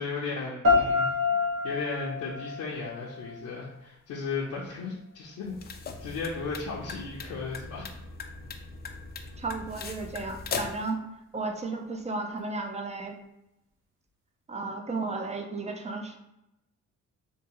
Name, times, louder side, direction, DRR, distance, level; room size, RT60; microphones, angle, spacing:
voice 1, 0.0-5.5 6.0-7.9, left 4 dB, 70° left, -4 dB, 0.7 m, -35 dB
sound 1, 0.6-3.6, left 4 dB, 45° right, 1.0 m, -27 dB
sound 2, 5.4-10.9, left 5 dB, 35° left, 0.4 m, -39 dB
voice 2, 9.4-11.0 11.3-13.2 14.5-16.2, right 3 dB, 20° right, 4 dB, 0.5 m, -34 dB
3.6 x 2.6 x 3.0 m, 0.88 s
cardioid pair, 90°, 30 cm